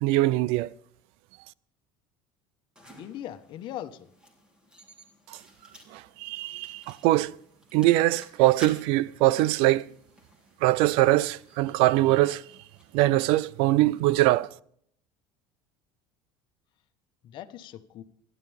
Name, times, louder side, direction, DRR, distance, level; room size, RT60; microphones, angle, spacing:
voice 1, 0.0-0.7 5.3-5.4 5.9-7.4 7.7-9.8 10.6-12.4 12.9-14.5, right 17 dB, 65° right, 0.5 m, -22 dB
sound 1, 2.8-14.0, left 1 dB, 10° right, 3.6 m, -54 dB
voice 2, 3.0-4.1 17.2-18.0, left 11 dB, 50° left, 1.4 m, -39 dB
27.5 x 11.0 x 3.6 m
cardioid pair, 135°, 10 cm